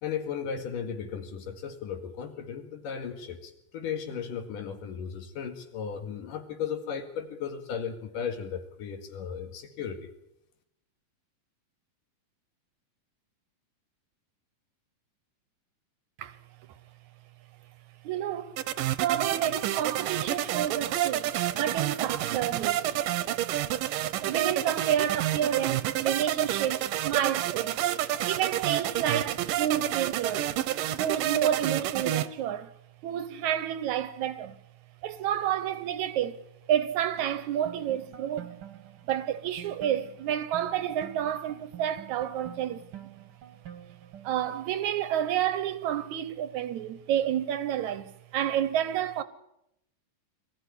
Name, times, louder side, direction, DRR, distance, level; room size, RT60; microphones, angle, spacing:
voice 1, 0.0-10.1, left 7 dB, 80° left, 3.6 m, -36 dB
voice 2, 18.0-18.6 19.0-22.9 24.2-27.8 28.3-30.5 31.0-32.7 33.0-34.6 35.0-36.4 36.7-38.5 39.1-43.0 44.2-49.2, right 10 dB, 70° right, 2.1 m, -30 dB
sound 1, 18.6-32.3, right 13 dB, 90° right, 2.6 m, -29 dB
sound 2, 37.2-44.8, right 10 dB, 50° right, 1.9 m, -48 dB
21.5 x 14.5 x 9.9 m
omnidirectional pair, 3.8 m